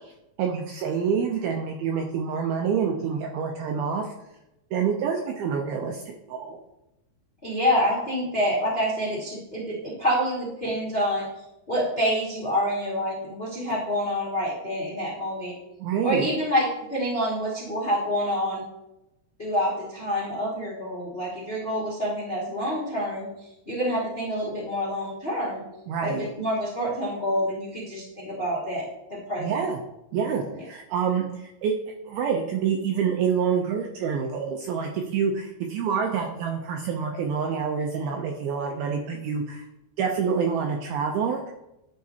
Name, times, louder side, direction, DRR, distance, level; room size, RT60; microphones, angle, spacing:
voice 1, 0.4-4.1 4.7-6.6 15.8-16.3 25.9-26.3 29.4-29.8 30.1-31.7 32.1-39.6 40.0-41.4, right 6 dB, 80° right, 1 dB, 2.2 m, -27 dB
voice 2, 7.4-11.2 11.7-15.5 16.0-18.6 19.4-23.3 23.6-25.6 26.0-29.6 30.5-30.6, equal, 45° left, -7 dB, 0.7 m, -27 dB
11.0 x 5.8 x 2.8 m, 0.89 s
omnidirectional pair, 5.0 m